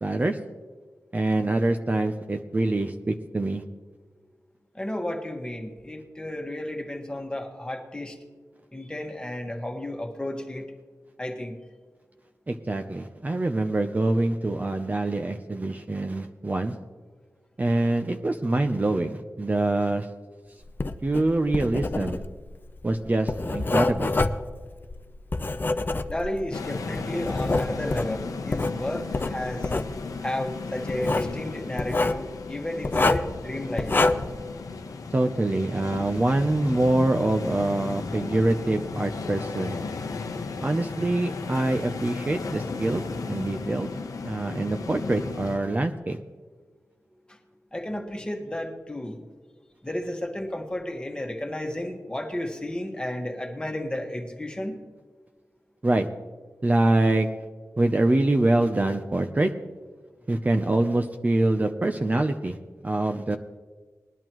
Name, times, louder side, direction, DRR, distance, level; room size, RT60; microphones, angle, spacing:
voice 1, 0.0-0.4 1.1-3.6 12.5-16.7 17.6-20.1 21.0-22.2 22.8-24.2 35.1-39.8 40.6-43.9 44.2-46.2 55.8-56.1 56.6-57.3 57.8-59.5 60.3-62.6 62.8-63.4, right 2 dB, 30° right, 5 dB, 0.6 m, -25 dB
voice 2, 4.7-8.2 8.7-10.6 11.2-11.6 26.1-29.7 30.2-33.9 47.3-47.4 47.7-49.2 49.8-54.8, left 1 dB, 15° left, 2 dB, 1.5 m, -32 dB
Writing, 20.7-26.5 27.0-28.8 29.1-29.9 30.9-31.3 31.8-32.2 32.8-33.4 33.8-34.4, left 2 dB, 35° left, 0.6 m, -26 dB
sound 1, 26.5-45.6, left 4 dB, 80° left, 0.8 m, -35 dB
20.0 x 11.0 x 3.0 m, 1.4 s
wide cardioid pair, 85°, 6 cm